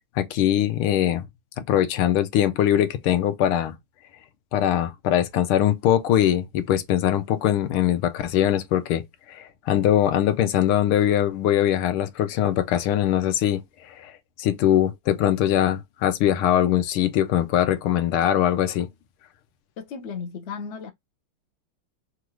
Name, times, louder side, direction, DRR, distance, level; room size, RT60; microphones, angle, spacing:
voice 1, 0.2-1.3 1.6-3.8 4.5-9.0 9.3-13.6 13.9-14.1 14.4-18.9, left 11 dB, 80° left, 1.6 m, -22 dB
voice 2, 19.8-20.9, left 5 dB, 60° left, 0.7 m, -35 dB
5.7 x 2.5 x 3.1 m
omnidirectional pair, 2.4 m